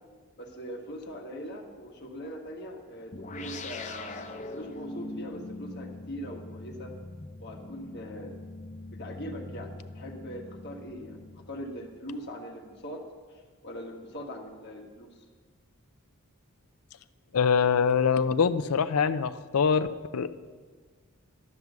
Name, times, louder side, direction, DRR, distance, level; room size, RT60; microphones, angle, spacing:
voice 1, 0.4-6.9 7.4-8.3 8.9-13.0 13.3-15.1, equal, 50° left, 1 dB, 1.5 m, -41 dB
sound 1, 3.1-11.9, left 2 dB, 35° left, 0.6 m, -42 dB
voice 2, 17.3-19.9 20.1-20.4, left 6 dB, 80° left, 12 dB, 0.5 m, -24 dB
12.0 x 6.1 x 8.2 m, 1.5 s
head